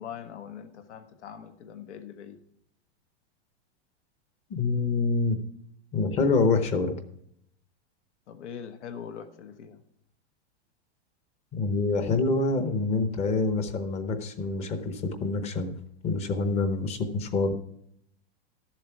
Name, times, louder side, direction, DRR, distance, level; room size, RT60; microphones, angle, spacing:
voice 1, 0.0-2.4 8.3-9.8, left 8 dB, 80° left, 8 dB, 1.4 m, -42 dB
voice 2, 4.5-5.4 5.9-6.9 11.5-15.7 16.0-17.5, left 3 dB, 20° left, 9 dB, 0.8 m, -26 dB
13.0 x 7.4 x 4.5 m, 0.73 s
supercardioid pair, 165°, 34 cm